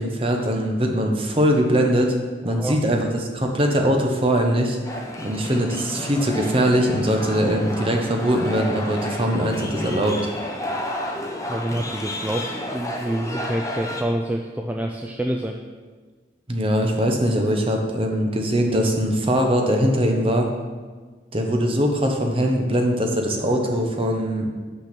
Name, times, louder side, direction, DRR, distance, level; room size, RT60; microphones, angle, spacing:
voice 1, 0.0-2.1 2.4-4.8 5.2-10.2 16.5-20.5 21.3-24.5, equal, 30° right, 2 dB, 0.9 m, -21 dB
voice 2, 2.4-2.8 11.5-15.6, right 1 dB, 10° right, 2 dB, 0.3 m, -27 dB
sound 1, 4.8-14.0, left 1 dB, 15° left, 0.8 m, -31 dB
6.1 x 6.0 x 6.0 m, 1.4 s
head